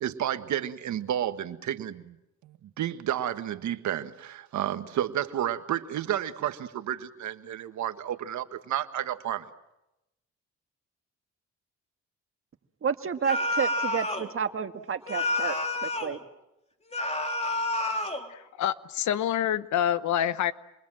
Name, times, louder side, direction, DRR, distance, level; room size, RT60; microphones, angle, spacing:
voice 1, 0.0-2.2 2.4-9.4, right 11 dB, 70° right, 10 dB, 1.5 m, -31 dB
voice 2, 12.8-15.6 15.8-16.2, right 7 dB, 45° right, 8 dB, 1.8 m, -30 dB
sound 1, 13.2-14.3 15.1-16.2 16.9-18.3, left 2 dB, 20° left, 3.1 m, -29 dB
voice 3, 18.3-20.5, left 10 dB, 70° left, 15 dB, 1.0 m, -27 dB
28.0 x 22.5 x 7.7 m, 0.90 s
cardioid pair, 90°, 30 cm